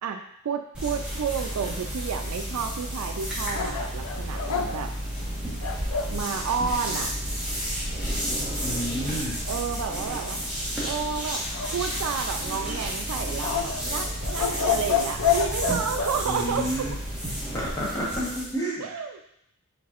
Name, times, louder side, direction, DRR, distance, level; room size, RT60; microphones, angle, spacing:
voice 1, 0.0-4.9 6.1-7.1 9.4-10.4 10.8-11.4 11.7-16.7 18.8-19.2, right 6 dB, 85° right, 5 dB, 0.4 m, -31 dB
sound 1, 0.7-18.5, equal, 5° right, 1.3 m, -31 dB
sound 2, 3.5-6.2 11.5-12.4 13.4-16.2, left 6 dB, 80° left, 0.4 m, -28 dB
voice 2, 8.6-9.4 16.2-16.9 17.5-19.0, equal, 15° left, -6 dB, 1.1 m, -30 dB
4.3 x 4.1 x 2.5 m, 0.73 s
head